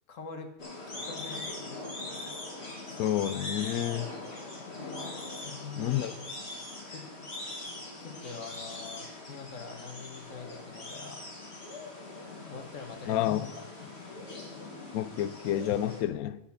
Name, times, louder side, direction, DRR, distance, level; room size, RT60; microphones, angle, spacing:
voice 1, 0.1-0.5 0.9-2.0 5.4-6.0 6.9-7.0 8.0-11.2 12.5-13.3, left 5 dB, 65° left, 1.7 m, -44 dB
sound 1, 0.6-16.0, left 2 dB, 50° left, 2.8 m, -41 dB
voice 2, 3.0-4.1 5.8-6.1 13.1-13.4 14.9-16.4, left 12 dB, 90° left, 1.1 m, -29 dB
15.0 x 5.9 x 5.8 m
omnidirectional pair, 1.5 m